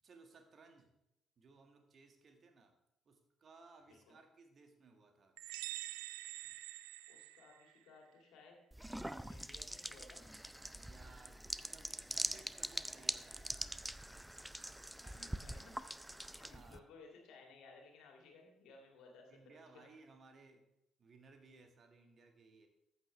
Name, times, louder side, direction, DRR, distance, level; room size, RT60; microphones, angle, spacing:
voice 1, 0.0-0.9 1.4-2.7 3.0-5.4 10.7-13.9 14.9-15.4 16.4-16.9 19.3-20.7 21.0-22.7, right 4 dB, 45° right, 5 dB, 1.7 m, -62 dB
sound 1, 5.4-7.9, right 16 dB, 70° right, 0.3 m, -46 dB
voice 2, 7.1-8.6 9.3-10.2 15.1-15.7 16.4-19.9, left 4 dB, 65° left, 1 dB, 2.4 m, -59 dB
sound 2, 8.7-16.8, right 1 dB, 5° right, 0.5 m, -43 dB
14.0 x 7.9 x 3.3 m, 0.85 s
figure-of-eight pair, 45°, 0 cm